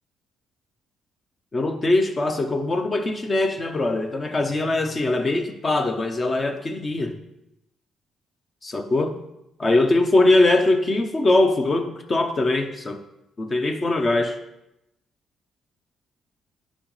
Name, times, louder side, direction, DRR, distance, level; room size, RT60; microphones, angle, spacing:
voice 1, 1.5-7.2 8.6-9.2 9.6-13.0 13.4-14.4, left 2 dB, 35° left, 6 dB, 0.7 m, -21 dB
10.0 x 5.2 x 3.3 m, 0.87 s
cardioid pair, 90°, 0 cm